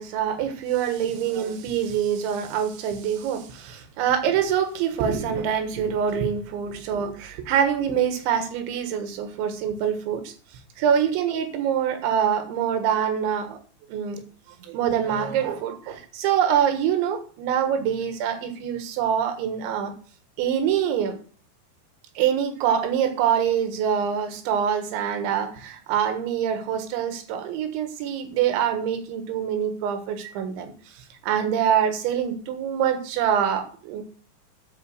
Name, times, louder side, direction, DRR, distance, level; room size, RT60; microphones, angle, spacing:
voice 1, 0.0-10.3 10.8-13.6 13.9-14.2 14.6-19.9 20.4-21.2 22.2-34.0, right 8 dB, 80° right, 8 dB, 3.7 m, -25 dB
13.0 x 5.2 x 6.4 m, 0.43 s
omnidirectional pair, 5.3 m